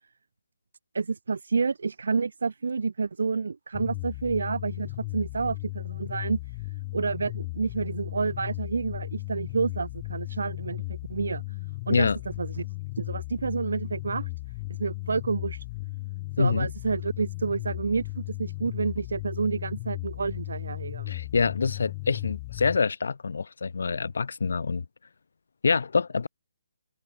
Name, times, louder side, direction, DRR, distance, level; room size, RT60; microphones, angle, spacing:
voice 1, 0.9-6.4 6.9-11.4 11.9-12.7 13.0-14.3 14.8-15.7 16.4-21.1, right 4 dB, 75° right, 0.6 m, -29 dB
sound 1, 3.7-22.8, left 22 dB, 25° left, 0.7 m, -36 dB
voice 2, 16.4-16.7 21.1-24.8 25.6-26.3, left 5 dB, 70° left, 1.0 m, -26 dB
hypercardioid pair, 155°, 0 cm